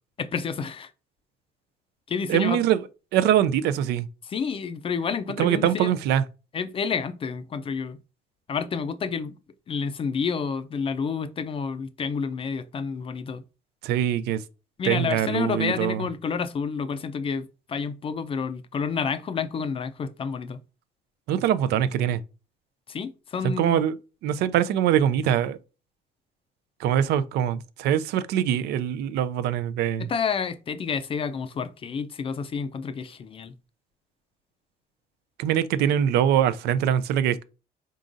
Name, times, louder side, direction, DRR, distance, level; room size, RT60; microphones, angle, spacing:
voice 1, 0.2-0.9 2.1-2.6 4.2-5.9 6.5-8.0 8.5-9.4 9.7-13.4 14.8-20.6 22.9-23.8 30.0-33.5, left 6 dB, 35° left, 0.4 m, -29 dB
voice 2, 2.3-2.8 3.1-4.1 5.4-6.2 13.8-14.4 14.9-16.0 21.3-22.2 23.4-23.9 24.2-25.6 26.8-30.1 35.4-37.4, right 10 dB, 75° right, 0.4 m, -23 dB
3.9 x 3.7 x 2.5 m
cardioid pair, 110°, 17 cm